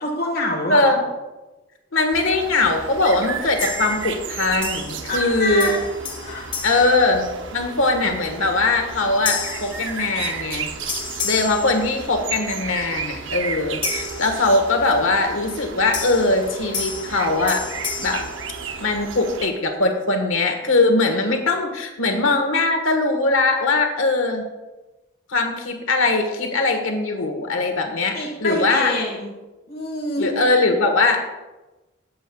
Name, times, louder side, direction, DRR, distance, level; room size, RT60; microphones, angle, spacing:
voice 1, 0.0-0.9 5.1-5.8 6.2-6.5 28.1-29.3 29.7-30.3, left 1 dB, 50° left, -1 dB, 1.7 m, -26 dB
voice 2, 0.7-1.0 1.9-5.8 6.6-10.7 11.2-17.6 18.0-18.2 18.8-24.4 25.3-28.9 30.2-31.2, left 3 dB, 85° left, 4 dB, 1.5 m, -21 dB
sound 1, 2.1-19.5, right 6 dB, 70° right, 0.7 m, -33 dB
sound 2, 3.6-4.3 4.6-5.3 5.6-7.8 8.3-8.5 9.2-10.6 10.9-12.5 13.8-15.0 15.9-19.2, left 5 dB, 25° left, 1.6 m, -32 dB
16.5 x 7.7 x 2.4 m, 1.1 s
head